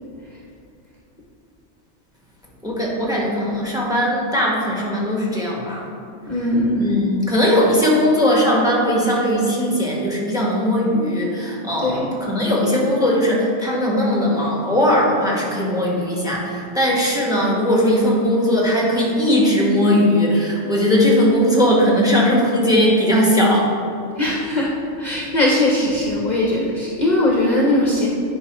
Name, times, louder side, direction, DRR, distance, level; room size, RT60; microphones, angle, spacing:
voice 1, 2.6-5.9 6.8-23.7, equal, 5° right, -3 dB, 1.2 m, -19 dB
voice 2, 6.3-7.0 11.8-12.1 24.2-24.7 25.0-28.1, left 1 dB, 45° left, -3 dB, 0.7 m, -20 dB
9.3 x 4.9 x 3.0 m, 2.5 s
omnidirectional pair, 1.2 m